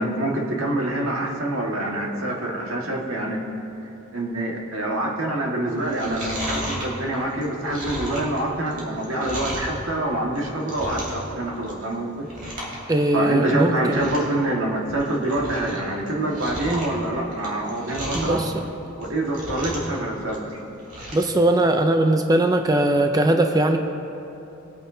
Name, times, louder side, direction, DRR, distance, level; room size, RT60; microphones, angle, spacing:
voice 1, 0.0-3.5 4.1-12.3 13.1-18.4 19.0-20.6, right 1 dB, 85° right, -1 dB, 1.8 m, -26 dB
Chewing mastication, 5.8-9.8 10.2-11.3 11.6-11.9 12.2-12.8 13.1-13.2 13.6-13.7 13.9-14.3 14.7-15.8 16.1-18.4 18.9-20.0 20.2-21.3 21.7-21.8, equal, 45° right, 2.8 m, -33 dB
voice 2, 12.9-14.1 18.1-18.5 21.1-23.8, right 1 dB, 20° right, 5 dB, 0.5 m, -20 dB
21.0 x 9.1 x 2.8 m, 2.9 s
head